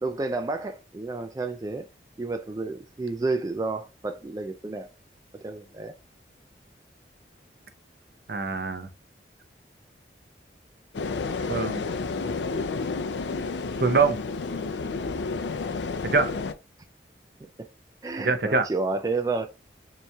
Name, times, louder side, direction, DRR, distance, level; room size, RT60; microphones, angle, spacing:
voice 1, 0.0-1.8 2.2-4.9 5.3-5.9 17.6-17.7 18.0-19.5, right 3 dB, 20° right, 0.3 m, -30 dB
voice 2, 8.3-8.9 11.5-11.9 13.8-14.2 16.0-16.3 18.2-18.7, right 4 dB, 60° right, 0.7 m, -24 dB
sound 1, 10.9-16.5, left 4 dB, 90° left, 0.5 m, -30 dB
6.9 x 3.1 x 2.3 m
head